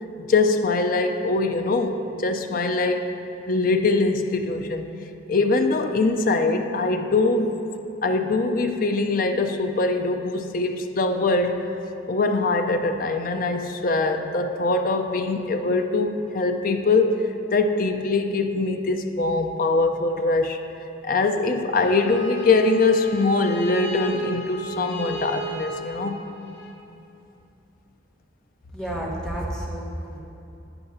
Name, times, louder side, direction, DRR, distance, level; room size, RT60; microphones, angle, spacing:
voice 1, 0.2-3.1 3.5-4.9 5.3-7.6 8.0-11.6 12.1-20.6 21.0-26.2, left 3 dB, 45° left, 6 dB, 0.5 m, -22 dB
Bowed string instrument, 21.7-26.7, right 4 dB, 65° left, 1.0 m, -33 dB
voice 2, 28.7-30.2, right 1 dB, 5° left, -5 dB, 1.1 m, -30 dB
10.5 x 8.9 x 2.7 m, 2.8 s
head